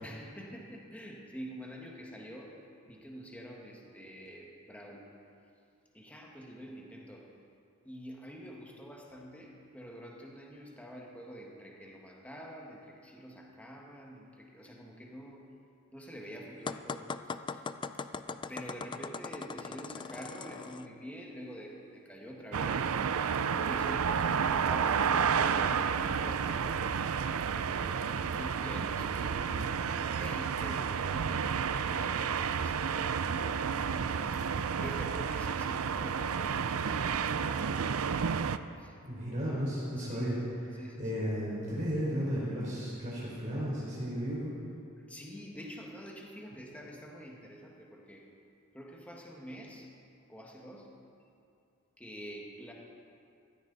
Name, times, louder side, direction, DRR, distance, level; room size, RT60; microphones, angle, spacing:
voice 1, 0.0-2.5 2.9-5.1 5.9-7.3 7.8-15.5 15.9-17.1 17.5-17.6 18.5-28.0 28.3-29.9 30.2-31.4 31.8-37.7 38.8-38.9 40.0-40.4 40.8-41.1 45.0-48.3 48.7-49.9 50.3-50.9 52.0-52.7, equal, 5° left, -2 dB, 1.7 m, -47 dB
sound 1, 16.7-20.9, left 4 dB, 20° left, 0.3 m, -40 dB
sound 2, 22.5-38.6, right 6 dB, 75° right, 0.5 m, -31 dB
voice 2, 39.1-40.4 40.7-44.5, equal, 35° right, -7 dB, 3.7 m, -34 dB
16.0 x 13.5 x 4.1 m, 2.5 s
head